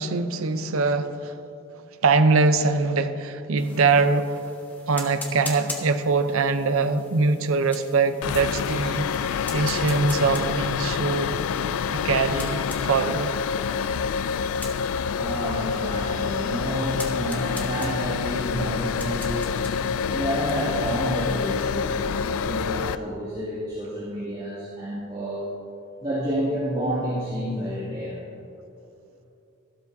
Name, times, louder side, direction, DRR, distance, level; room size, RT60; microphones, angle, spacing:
voice 1, 0.0-1.3 2.0-4.4 4.9-11.3 11.9-13.4, right 4 dB, 75° right, 10 dB, 0.6 m, -23 dB
sound 1, 3.6-21.6, left 2 dB, 10° left, 0.9 m, -43 dB
sound 2, 8.2-23.0, left 6 dB, 75° left, 0.3 m, -27 dB
voice 2, 15.1-19.5 20.1-25.5 26.0-28.2, equal, 25° right, -10 dB, 2.4 m, -29 dB
13.0 x 12.5 x 2.7 m, 2.7 s
head